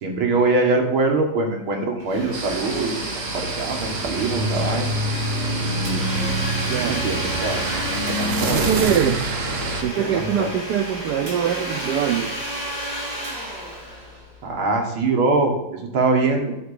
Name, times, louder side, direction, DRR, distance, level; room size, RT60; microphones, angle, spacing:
voice 1, 0.0-3.0 3.3-4.9 5.8-6.3 6.8-7.6 8.1-8.7 10.0-10.5 14.4-15.5 15.9-16.5, right 3 dB, 70° right, 2 dB, 2.3 m, -23 dB
Domestic sounds home sounds, 2.0-14.6, equal, 40° right, 3.7 m, -32 dB
sound 1, 2.3-9.8, right 2 dB, 55° right, 0.7 m, -26 dB
voice 2, 8.5-9.2 9.8-12.4, right 9 dB, 90° right, 7 dB, 0.9 m, -23 dB
9.2 x 6.6 x 4.9 m, 0.95 s
omnidirectional pair, 2.3 m